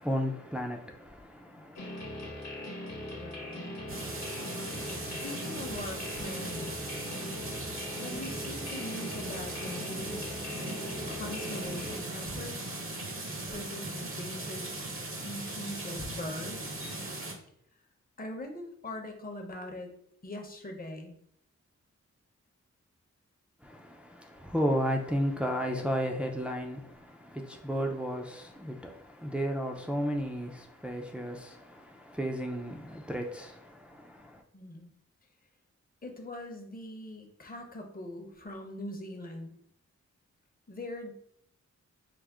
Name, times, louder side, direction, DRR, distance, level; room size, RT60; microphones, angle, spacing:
voice 1, 0.0-1.9 23.6-34.4, equal, 5° right, 0.5 m, -34 dB
sound 1, 1.8-12.0, left 1 dB, 60° left, 1.1 m, -40 dB
voice 2, 3.2-4.0 5.0-6.7 8.0-10.2 11.1-12.8 13.5-14.8 15.2-16.8 18.2-19.9 20.2-21.2 34.5-34.9 36.0-39.5 40.7-41.1, left 1 dB, 30° left, 0.8 m, -42 dB
sound 2, 3.9-17.3, right 2 dB, 45° right, 0.9 m, -39 dB
4.9 x 2.0 x 3.5 m
cardioid pair, 65°, 30 cm